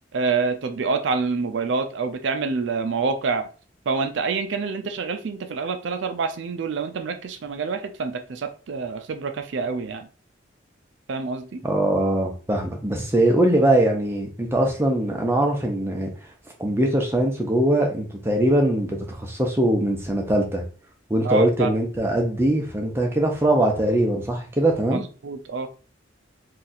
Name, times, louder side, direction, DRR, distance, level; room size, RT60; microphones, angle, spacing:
voice 1, 0.1-3.5 3.9-10.1 11.1-11.6 21.2-21.7 24.9-25.7, right 4 dB, 65° right, 8 dB, 0.4 m, -27 dB
voice 2, 11.6-16.1 16.6-20.6 21.1-25.0, right 1 dB, 10° right, 1 dB, 0.6 m, -21 dB
2.6 x 2.4 x 4.0 m, 0.37 s
head